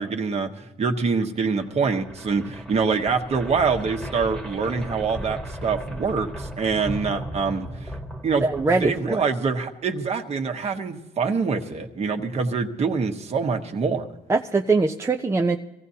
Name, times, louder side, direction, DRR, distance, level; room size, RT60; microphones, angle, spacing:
voice 1, 0.0-7.9 8.2-8.4 8.8-14.1, right 5 dB, 40° right, 5 dB, 1.3 m, -25 dB
sound 1, 1.6-9.5, equal, ahead, 1.4 m, -36 dB
voice 2, 8.4-9.3 14.3-15.6, right 3 dB, 15° right, 3 dB, 0.5 m, -22 dB
23.5 x 15.5 x 2.8 m, 1.0 s
cardioid pair, 110°, 17 cm